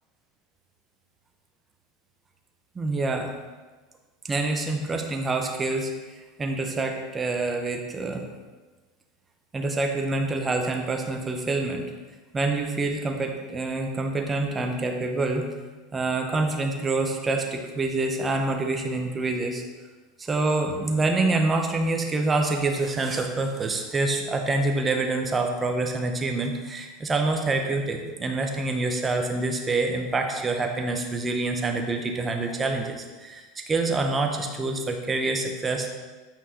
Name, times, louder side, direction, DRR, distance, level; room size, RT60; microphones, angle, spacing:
voice 1, 2.7-3.3 4.2-5.9 6.4-8.3 9.5-11.9 12.3-15.5 15.9-19.6 20.2-35.9, right 3 dB, 20° right, 3 dB, 1.1 m, -26 dB
8.7 x 5.4 x 3.7 m, 1.3 s
hypercardioid pair, 105°, 0 cm